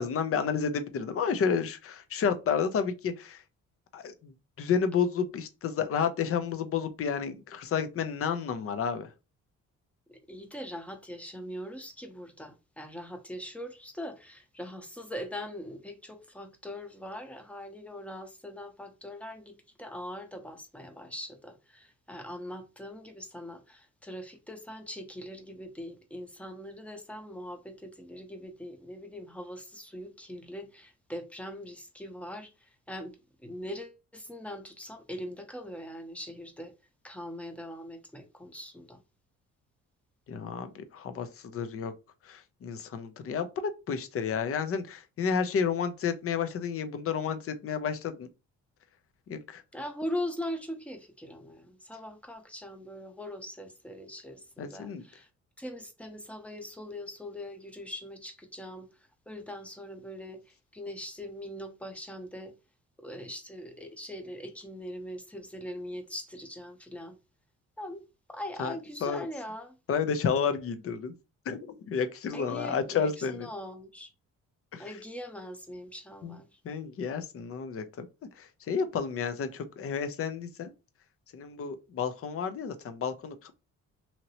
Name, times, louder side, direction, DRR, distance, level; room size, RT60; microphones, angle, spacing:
voice 1, 0.0-3.4 3.9-4.3 4.6-9.1 40.3-41.9 42.2-48.3 49.3-49.6 54.6-55.0 68.6-68.7 69.0-69.3 69.9-71.1 71.5-73.5 74.7-74.8 76.2-76.4 76.6-78.1 78.4-80.7 81.3-83.5, left 6 dB, 50° left, 0.6 m, -31 dB
voice 2, 10.1-33.2 33.4-36.7 37.0-39.0 49.7-55.3 55.6-58.9 59.3-62.5 63.0-67.1 67.8-68.0 68.3-69.8 72.3-74.1 74.8-76.6, left 1 dB, 5° left, 0.7 m, -41 dB
2.9 x 2.8 x 2.8 m
cardioid pair, 90°, 30 cm